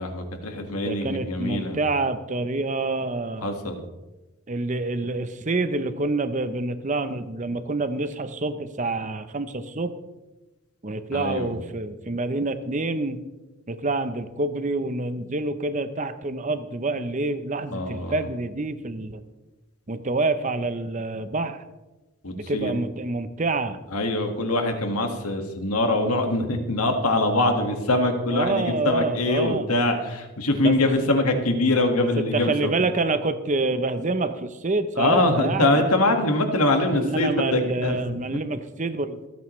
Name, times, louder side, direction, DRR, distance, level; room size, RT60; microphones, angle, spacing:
voice 1, 0.0-1.8 3.4-3.8 11.1-11.6 17.7-18.3 22.2-22.7 23.9-32.7 35.0-38.0, left 2 dB, 80° left, 5 dB, 1.8 m, -23 dB
voice 2, 0.8-3.4 4.5-9.9 10.8-13.2 13.7-19.2 19.9-21.6 22.3-23.8 28.3-29.6 30.6-30.8 32.2-35.7 36.9-39.2, right 2 dB, 35° right, 11 dB, 0.7 m, -27 dB
27.5 x 9.3 x 3.2 m, 1.1 s
head